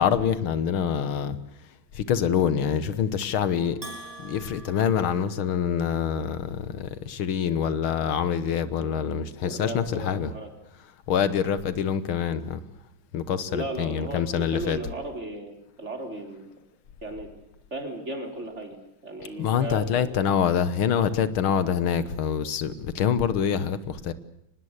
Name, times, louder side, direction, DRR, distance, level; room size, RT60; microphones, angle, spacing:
voice 1, 0.0-10.3 11.1-12.6 13.1-14.8 19.4-24.1, left 8 dB, 85° left, 15 dB, 2.1 m, -26 dB
Bell, 3.8-6.0, right 2 dB, 20° right, 3.3 m, -44 dB
voice 2, 9.4-10.5 13.5-16.5 17.0-17.3 17.7-18.8 19.0-20.2, right 2 dB, 35° right, 4 dB, 4.2 m, -35 dB
24.5 x 20.0 x 8.2 m, 0.80 s
omnidirectional pair, 2.2 m